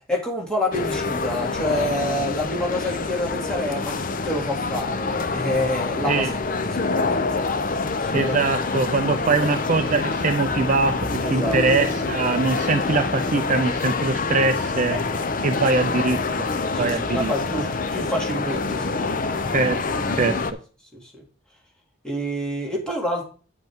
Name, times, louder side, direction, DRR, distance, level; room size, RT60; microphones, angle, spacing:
voice 1, 0.1-7.4 8.0-8.3 11.2-11.6 14.9-15.3 16.7-19.1 20.9-21.2 22.0-23.3, equal, 5° left, -2 dB, 2.3 m, -28 dB
sound 1, 0.7-20.5, left 3 dB, 40° left, 0.6 m, -26 dB
voice 2, 8.1-15.0 15.4-16.5 16.8-17.3 19.5-20.4, right 3 dB, 40° right, 8 dB, 0.5 m, -22 dB
9.0 x 8.0 x 3.6 m, 0.37 s
head